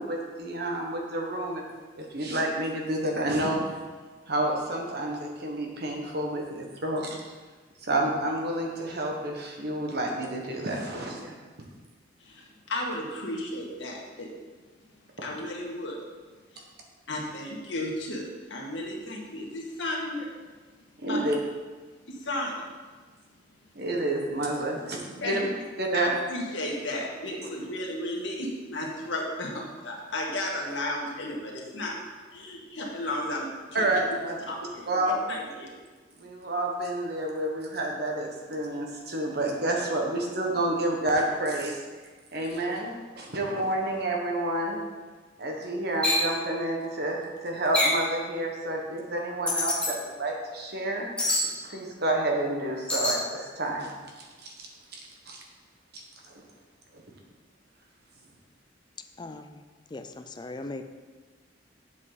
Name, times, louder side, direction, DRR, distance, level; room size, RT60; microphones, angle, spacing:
voice 1, 0.0-1.6 2.0-3.8 4.3-7.2 7.8-11.3 21.0-21.4 23.7-25.5 25.8-26.1 33.7-34.4 34.9-35.2 36.2-41.8 42.3-44.8 45.4-51.0 51.6-53.9 54.2-54.5 54.9-55.0 55.3-55.4 55.9-56.0 56.3-56.4 56.9-57.0, right 1 dB, 60° right, 0 dB, 1.5 m, -29 dB
voice 2, 12.2-14.3 15.2-16.0 16.5-16.6 17.1-20.3 21.1-21.2 22.1-22.6 25.2-25.4 25.9-31.9 32.3-33.9 34.5-35.0 35.3-35.7, left 1 dB, 80° left, -2 dB, 1.8 m, -34 dB
sound 1, 46.0-46.3 47.7-48.1 49.5-49.9 51.2-51.5 52.9-53.2, left 1 dB, 5° left, 1.4 m, -25 dB
voice 3, 59.2-59.6 59.9-60.8, left 2 dB, 25° left, 8 dB, 0.4 m, -39 dB
7.6 x 7.4 x 4.1 m, 1.4 s
head